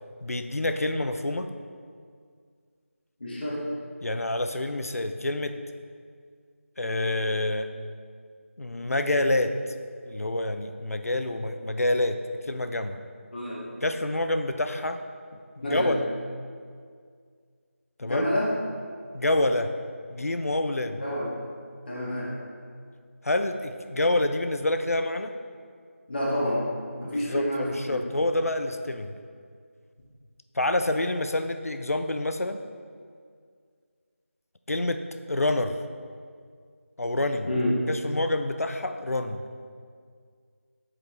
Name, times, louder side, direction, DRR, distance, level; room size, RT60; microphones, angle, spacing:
voice 1, 0.2-1.5 4.0-5.6 6.8-7.7 8.6-9.6 10.0-13.0 13.8-15.0 15.6-16.1 18.0-18.3 19.1-19.7 20.1-21.0 23.2-25.3 27.0-29.1 30.5-32.6 34.7-35.8 37.0-37.5 37.9-39.4, left 1 dB, 85° left, 8 dB, 0.6 m, -27 dB
voice 2, 3.2-3.6 13.3-13.6 15.6-15.9 18.0-18.5 21.0-21.3 21.9-22.3 26.1-26.6 27.0-28.0 37.5-37.7, left 1 dB, 45° left, -7 dB, 1.7 m, -28 dB
9.5 x 5.0 x 3.3 m, 2.1 s
figure-of-eight pair, 170°, 8 cm